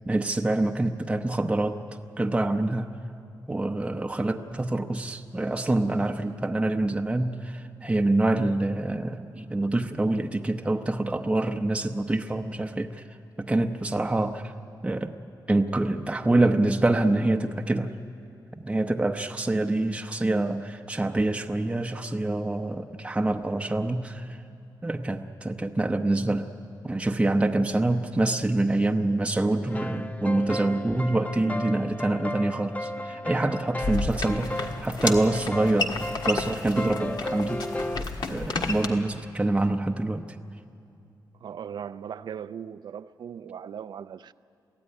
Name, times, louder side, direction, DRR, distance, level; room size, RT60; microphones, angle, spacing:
voice 1, 0.1-1.8 2.2-2.9 3.5-13.0 13.4-14.5 14.8-15.1 15.5-17.9 18.6-24.4 24.8-26.5 26.8-37.9 38.3-40.2, right 2 dB, 15° right, 0.8 m, -26 dB
sound 1, 29.7-38.0, left 1 dB, 20° left, 0.5 m, -34 dB
sound 2, 33.8-38.9, left 3 dB, 70° left, 1.6 m, -32 dB
voice 2, 41.4-44.3, right 8 dB, 70° right, 0.4 m, -38 dB
23.0 x 15.5 x 9.7 m
cardioid pair, 105°, 8 cm